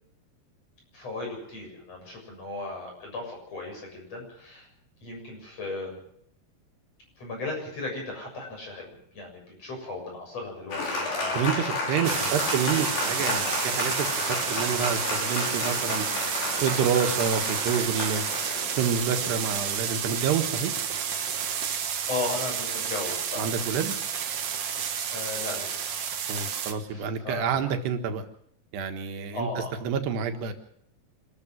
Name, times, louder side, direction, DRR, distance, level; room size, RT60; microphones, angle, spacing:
voice 1, 0.9-4.7 5.0-6.0 7.2-11.4 12.1-12.4 22.1-23.6 25.1-26.1 26.9-27.6 29.3-29.7, left 3 dB, 40° left, 1 dB, 8.2 m, -36 dB
Applause, 10.7-19.7, left 3 dB, 90° left, 7.4 m, -31 dB
voice 2, 11.4-16.0 16.6-18.2 18.8-20.7 23.4-24.0 26.3-28.2 28.7-30.5, right 7 dB, 80° right, 6 dB, 3.7 m, -28 dB
sound 1, 12.0-26.7, right 7 dB, 60° right, 1.6 m, -30 dB
26.5 x 13.5 x 7.4 m, 0.69 s
omnidirectional pair, 4.7 m